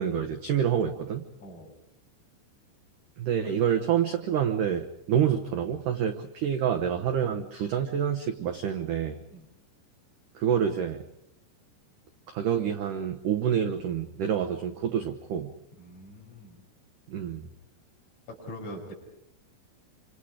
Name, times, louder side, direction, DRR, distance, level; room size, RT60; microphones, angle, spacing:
voice 1, 0.0-1.3 3.2-9.2 10.4-11.0 12.3-15.5 17.1-17.5, right 8 dB, 80° right, 5 dB, 1.8 m, -27 dB
voice 2, 1.4-1.7 3.4-3.6 9.3-9.5 15.8-16.6 18.3-18.9, left 1 dB, 40° left, -3 dB, 7.3 m, -43 dB
27.5 x 26.0 x 5.0 m, 0.80 s
omnidirectional pair, 5.3 m